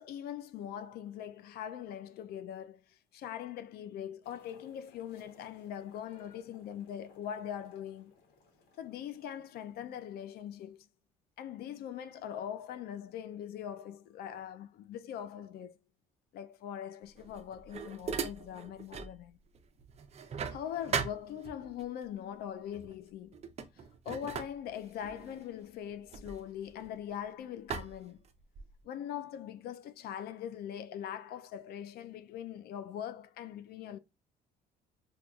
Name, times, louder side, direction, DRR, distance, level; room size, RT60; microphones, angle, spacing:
voice 1, 0.0-8.1 8.8-10.9 11.4-15.8 16.3-19.4 20.5-23.4 24.1-28.2 28.8-34.0, left 10 dB, 65° left, 0.4 m, -42 dB
sound 1, 4.2-10.8, left 3 dB, 85° left, 1.4 m, -64 dB
sound 2, 17.2-19.2 19.5-21.9 22.7-23.0 23.3-27.2 27.7-28.8, right 6 dB, 40° right, 0.5 m, -40 dB
5.3 x 2.3 x 2.3 m
cardioid pair, 110°, 17 cm